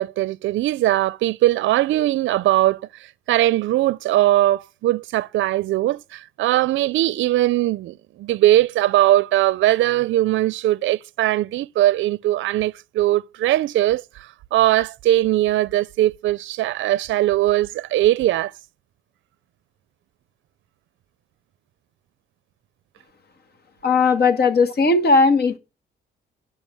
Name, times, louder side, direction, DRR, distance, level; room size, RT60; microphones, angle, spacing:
voice 1, 0.0-18.5, right 14 dB, 75° right, 0.5 m, -20 dB
voice 2, 23.8-25.6, left 3 dB, 55° left, 2.0 m, -17 dB
10.5 x 5.8 x 7.7 m
cardioid pair, 90°, 20 cm